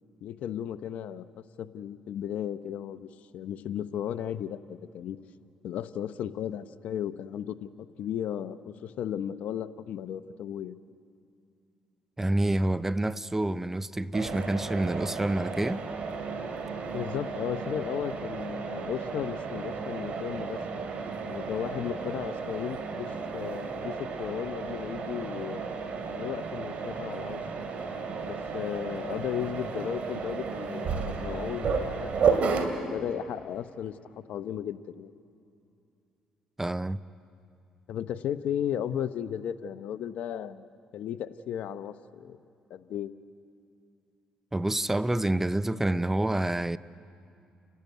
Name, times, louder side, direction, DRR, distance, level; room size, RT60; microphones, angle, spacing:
voice 1, 0.2-1.2 1.6-3.1 3.3-5.2 5.6-10.8 16.9-20.6 21.2-25.6 26.1-27.7 28.2-35.1 37.9-40.7 40.9-42.4 42.7-43.1, left 9 dB, 70° left, 0.7 m, -35 dB
voice 2, 12.2-15.8 36.6-37.0 44.5-46.8, right 1 dB, 15° right, 0.5 m, -28 dB
Mechanisms, 14.1-32.6, right 5 dB, 60° right, 2.4 m, -33 dB
30.0 x 12.5 x 9.4 m
supercardioid pair, 70°, 3 cm